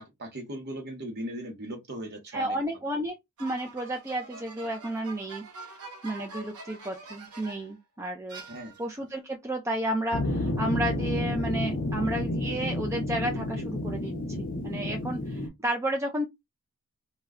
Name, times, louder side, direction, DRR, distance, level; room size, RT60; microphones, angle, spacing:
voice 1, 0.0-2.6 8.5-8.7, right 1 dB, 50° right, 0.8 m, -38 dB
voice 2, 2.3-5.7 6.0-8.4 8.8-16.3, right 1 dB, 15° right, 0.3 m, -32 dB
sound 1, 3.4-7.8 8.3-9.1, right 3 dB, 80° right, 0.8 m, -45 dB
sound 2, 10.1-15.5, left 1 dB, 40° left, 0.6 m, -30 dB
2.2 x 2.2 x 3.5 m
head